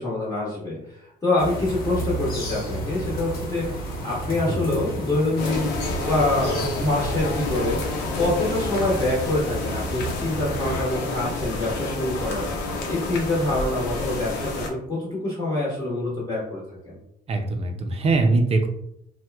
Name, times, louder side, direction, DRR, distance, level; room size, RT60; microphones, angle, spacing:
voice 1, 0.0-7.8 8.2-12.4 12.9-17.0, left 2 dB, 20° left, -6 dB, 1.1 m, -26 dB
sound 1, 1.4-10.9, equal, 60° left, 1.1 m, -32 dB
sound 2, 5.4-14.7, left 2 dB, 85° left, 0.7 m, -29 dB
voice 2, 17.3-18.7, right 3 dB, 35° right, 5 dB, 0.6 m, -22 dB
2.9 x 2.2 x 3.4 m, 0.74 s
cardioid pair, 110°, 17 cm